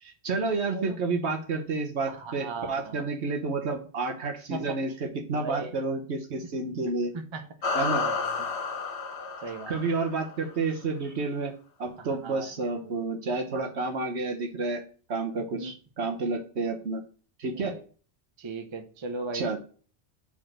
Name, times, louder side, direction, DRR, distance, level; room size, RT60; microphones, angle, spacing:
voice 1, 0.0-7.1 7.7-8.0 9.7-11.5 11.8-14.8 15.1-17.0 17.4-17.8 19.3-19.6, right 3 dB, 70° right, 1.3 m, -30 dB
voice 2, 2.1-3.1 4.5-4.8 5.3-5.8 7.1-7.4 7.9-8.3 9.4-9.8 12.0-12.5 12.8-12.9 15.5-15.7 17.6-17.8 18.4-19.6, right 3 dB, 30° right, 0.7 m, -37 dB
sound 1, 7.6-10.4, left 4 dB, 70° left, 1.2 m, -31 dB
5.0 x 4.3 x 6.0 m
omnidirectional pair, 1.2 m